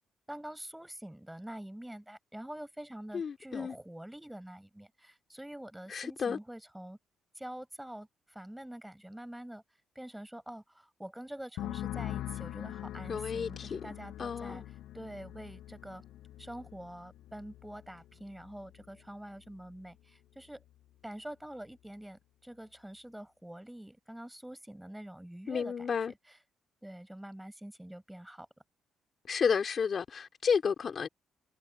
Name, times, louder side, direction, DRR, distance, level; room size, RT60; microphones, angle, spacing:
voice 1, 0.3-7.0 7.3-9.6 9.9-16.0 16.4-20.6 21.0-26.4 26.8-28.5, right 1 dB, 5° right, 6.4 m, -46 dB
voice 2, 3.1-3.7 5.9-6.4 13.1-13.8 14.2-14.6 25.5-26.1 29.3-31.1, left 6 dB, 45° left, 3.0 m, -31 dB
sound 1, 11.6-19.0 19.3-19.8, left 13 dB, 85° left, 6.9 m, -43 dB
cardioid pair, 90°, 0 cm